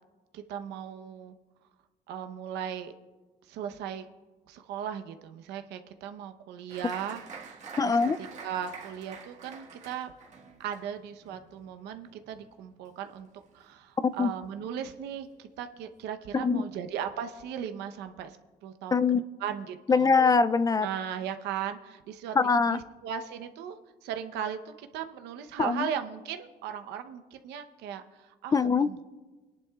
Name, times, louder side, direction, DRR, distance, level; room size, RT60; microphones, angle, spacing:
voice 1, 0.3-1.3 2.1-2.9 3.5-4.0 4.5-10.1 10.6-13.3 13.5-18.4 18.6-19.1 19.4-20.1 20.8-22.4 22.7-28.5 28.8-29.0, right 8 dB, 85° right, 7 dB, 0.8 m, -37 dB
Applause, 6.7-13.8 14.0-14.8 15.2-15.3 15.6-16.0, right 5 dB, 45° right, 1.7 m, -47 dB
voice 2, 7.8-8.2 14.2-14.3 16.3-16.7 18.9-19.2 19.9-20.9 22.4-22.8 25.6-25.9 28.5-28.9, left 4 dB, 20° left, 15 dB, 0.3 m, -23 dB
24.0 x 11.0 x 2.4 m, 1.2 s
cardioid pair, 110°, 17 cm